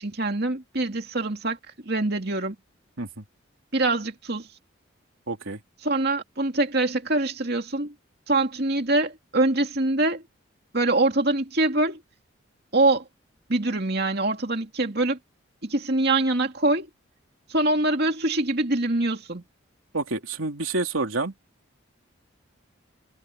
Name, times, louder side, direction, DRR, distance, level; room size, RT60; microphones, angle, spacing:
voice 1, 0.0-1.6 1.9-2.5 3.7-4.5 5.8-7.9 8.3-10.2 10.7-12.0 12.7-13.0 13.5-15.2 15.6-16.9 17.5-19.4, right 2 dB, 50° right, 2.7 m, -24 dB
voice 2, 5.3-5.6 19.9-21.3, right 3 dB, 80° right, 3.0 m, -28 dB
head